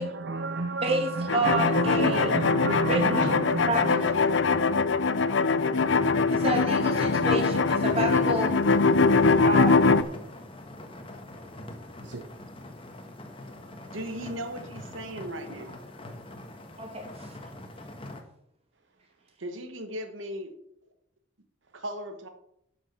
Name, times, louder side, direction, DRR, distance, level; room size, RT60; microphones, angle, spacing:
voice 1, 0.0-4.0 4.3-4.6 12.0-12.2, right 3 dB, 60° right, 8 dB, 0.7 m, -31 dB
voice 2, 0.8-2.4 2.9-3.4 3.7-4.1 6.3-8.5 9.4-9.9 16.8-17.3, right 1 dB, 30° right, 2 dB, 2.4 m, -29 dB
sound 1, 1.3-10.0, left 4 dB, 70° left, 0.6 m, -22 dB
sound 2, 7.7-18.2, left 1 dB, 30° left, 1.3 m, -43 dB
voice 3, 13.9-15.8 19.4-20.5 21.7-22.3, right 1 dB, 85° right, 7 dB, 1.2 m, -37 dB
12.0 x 6.2 x 5.8 m, 0.76 s
head